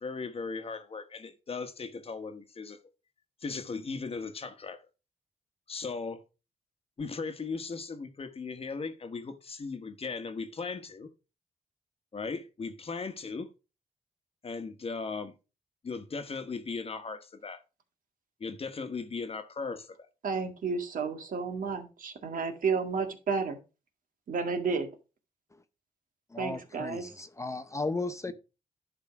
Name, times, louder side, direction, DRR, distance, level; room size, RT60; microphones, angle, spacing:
voice 1, 0.0-2.8 3.4-4.8 5.7-6.2 7.0-11.1 12.1-13.5 14.4-15.3 15.8-17.6 18.4-20.0 28.3-28.4, left 4 dB, 40° left, 1.2 m, -37 dB
voice 2, 20.2-23.6 24.3-24.9 26.4-27.0, right 5 dB, 65° right, 1.8 m, -31 dB
voice 3, 26.3-28.3, left 3 dB, 20° left, 0.6 m, -35 dB
11.0 x 3.7 x 5.9 m
cardioid pair, 100°, 15 cm